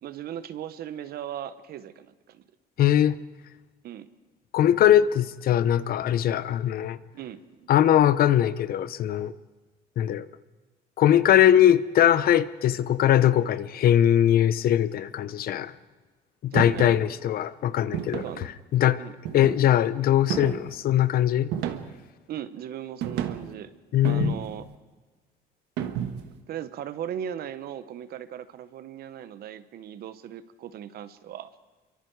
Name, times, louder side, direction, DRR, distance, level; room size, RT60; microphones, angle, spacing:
voice 1, 0.0-2.4 3.8-4.1 7.1-7.7 16.5-16.9 18.2-18.5 19.0-19.2 22.3-23.7 24.0-24.6 26.5-31.5, right 10 dB, 65° right, 1.2 m, -38 dB
voice 2, 2.8-3.2 4.5-7.0 7.7-9.3 10.0-10.3 11.0-15.7 16.4-18.2 18.7-19.0 19.3-21.5 23.9-24.3, left 11 dB, 60° left, 0.9 m, -21 dB
sound 1, 16.6-17.0 17.9-18.4 19.3-19.8 20.3-20.8 21.5-22.1 23.0-23.5 24.0-24.7 25.8-26.4, right 9 dB, 90° right, 1.5 m, -31 dB
27.5 x 24.0 x 4.8 m
cardioid pair, 110°, 17 cm